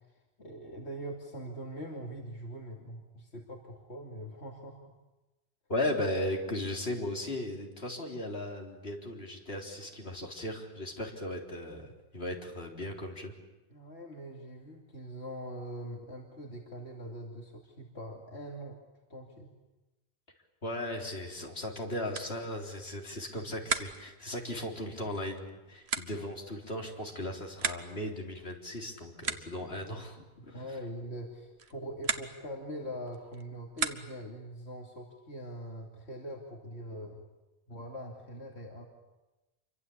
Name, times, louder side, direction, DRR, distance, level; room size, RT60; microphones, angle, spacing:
voice 1, 0.1-4.9 13.7-18.8 19.1-19.5 30.2-37.2 37.7-38.9, equal, 90° left, 0 dB, 3.0 m, -43 dB
voice 2, 5.7-13.3 20.6-30.2 30.5-30.8, left 1 dB, 70° left, 1 dB, 4.1 m, -37 dB
sound 1, 22.0-34.4, right 5 dB, 80° right, 1.5 m, -40 dB
27.5 x 24.0 x 8.6 m, 1.1 s
omnidirectional pair, 1.1 m